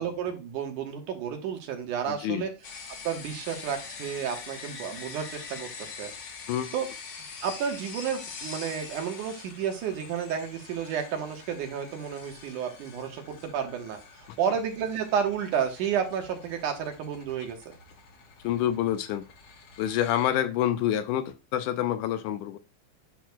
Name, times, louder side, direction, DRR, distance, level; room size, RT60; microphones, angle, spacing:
voice 1, 0.0-2.5 3.0-6.1 6.7-6.9 7.4-14.0 14.4-17.6, right 8 dB, 80° right, 2.8 m, -31 dB
voice 2, 2.1-2.5 6.5-6.7 18.4-19.3 19.8-22.6, left 11 dB, 90° left, 2.2 m, -27 dB
sound 1, 2.6-20.3, left 5 dB, 60° left, 1.9 m, -45 dB
10.0 x 6.4 x 2.3 m
omnidirectional pair, 3.6 m